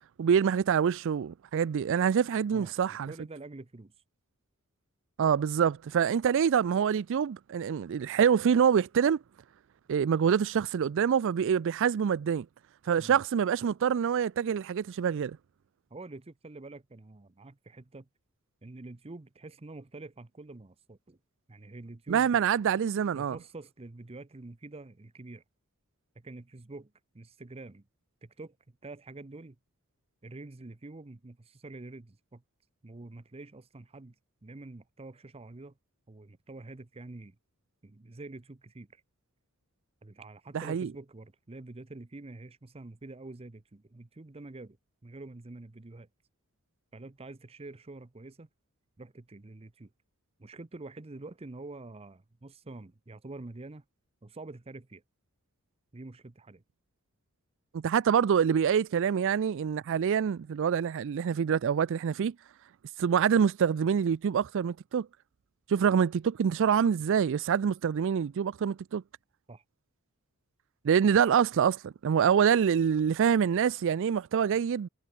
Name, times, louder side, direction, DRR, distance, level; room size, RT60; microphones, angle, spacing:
voice 1, 0.2-3.1 5.2-9.2 9.9-12.5 12.9-15.4 22.1-23.4 40.7-40.9 57.7-62.3 63.0-65.1 65.7-69.0 70.8-74.9, right 7 dB, 60° right, 0.4 m, -26 dB
voice 2, 2.5-3.9 10.2-10.3 13.0-13.2 15.9-18.1 18.6-21.2 21.5-22.3 23.1-25.4 26.2-27.8 28.2-29.6 30.2-32.4 32.8-34.1 34.4-35.8 36.1-37.4 37.8-39.0 40.0-44.8 45.0-46.1 46.9-48.5 49.0-49.9 50.4-53.8 54.2-55.0 55.9-56.6 69.5-69.6, right 2 dB, 25° right, 0.7 m, -46 dB
head